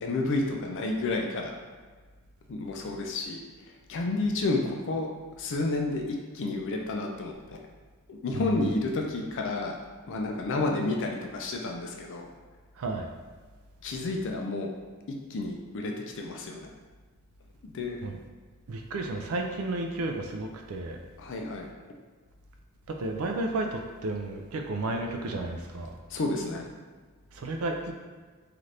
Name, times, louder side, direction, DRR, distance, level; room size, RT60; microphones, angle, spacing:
voice 1, 0.0-1.5 2.5-3.4 3.9-5.1 5.4-6.0 6.3-7.6 8.1-9.8 10.1-12.3 13.8-14.8 15.3-16.7 17.6-18.0 21.2-21.7 26.1-26.7, left 2 dB, 55° left, 1 dB, 0.4 m, -30 dB
voice 2, 8.3-8.8 12.8-13.1 18.0-18.2 18.7-21.0 22.9-26.0 27.3-27.9, right 2 dB, 70° right, 3 dB, 0.4 m, -32 dB
2.7 x 2.5 x 3.2 m, 1.5 s
head